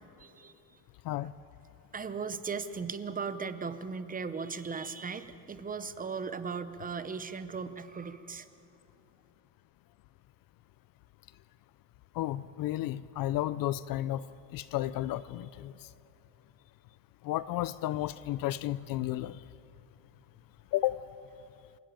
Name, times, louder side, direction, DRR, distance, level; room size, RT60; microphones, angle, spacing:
voice 1, 0.2-0.5 1.9-8.5, right 5 dB, 20° right, 12 dB, 0.7 m, -37 dB
voice 2, 12.1-14.2 14.5-15.7 17.2-19.4 20.7-21.0, left 14 dB, 50° left, 17 dB, 0.5 m, -32 dB
28.0 x 12.5 x 9.0 m, 2.8 s
cardioid pair, 145°, 46 cm